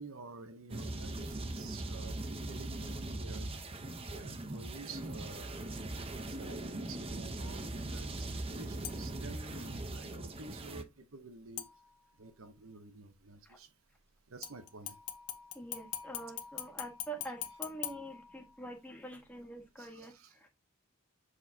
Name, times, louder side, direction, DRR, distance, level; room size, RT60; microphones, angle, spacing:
voice 1, 0.0-3.5 4.1-5.8 6.2-11.7 12.2-13.7 14.3-15.0 19.8-20.5, right 3 dB, 60° right, 0.9 m, -50 dB
sound 1, 0.7-10.8, right 2 dB, 25° right, 0.8 m, -40 dB
sound 2, 8.8-9.3 11.6-12.3 14.4-18.8 19.2-19.3, left 11 dB, 85° left, 1.2 m, -44 dB
voice 2, 15.5-20.5, right 1 dB, 5° left, 1.4 m, -46 dB
8.0 x 4.7 x 2.8 m
head